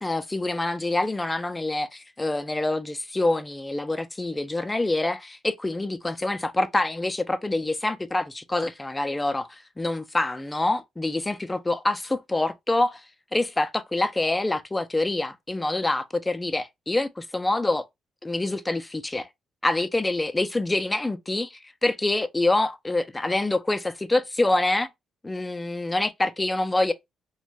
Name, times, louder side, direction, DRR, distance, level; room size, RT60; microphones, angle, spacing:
voice 1, 0.0-13.0 13.3-17.8 18.2-19.3 19.6-24.9 25.2-26.9, left 2 dB, 15° left, 0.4 m, -26 dB
2.5 x 2.2 x 3.1 m
cardioid pair, 90°, 0 cm